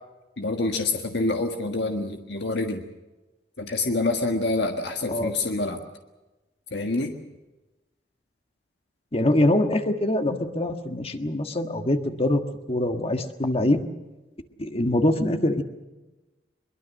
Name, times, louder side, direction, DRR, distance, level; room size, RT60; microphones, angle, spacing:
voice 1, 0.4-2.8 3.6-5.8 6.7-7.1, left 2 dB, 65° left, 4 dB, 1.6 m, -26 dB
voice 2, 9.1-12.4 12.7-13.8 14.6-15.6, left 1 dB, 35° left, 6 dB, 1.6 m, -23 dB
22.5 x 22.5 x 6.5 m, 1.1 s
head